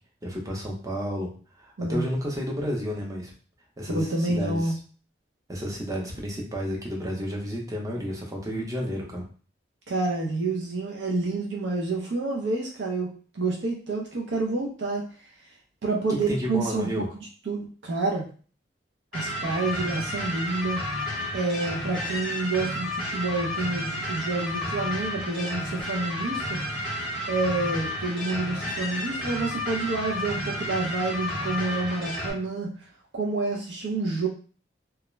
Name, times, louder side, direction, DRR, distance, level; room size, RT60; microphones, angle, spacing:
voice 1, 0.2-1.3 1.6-3.3 3.8-4.8 5.5-9.2 16.1-17.1, equal, 20° right, -2 dB, 0.6 m, -31 dB
voice 2, 1.8-2.1 3.9-4.7 9.9-15.1 15.8-18.3 19.1-20.8 21.3-26.6 27.3-32.9 33.1-34.3, right 3 dB, 80° right, -1 dB, 0.5 m, -28 dB
sound 1, 19.1-32.3, left 1 dB, 5° left, 1.0 m, -31 dB
2.3 x 2.1 x 3.0 m, 0.40 s
head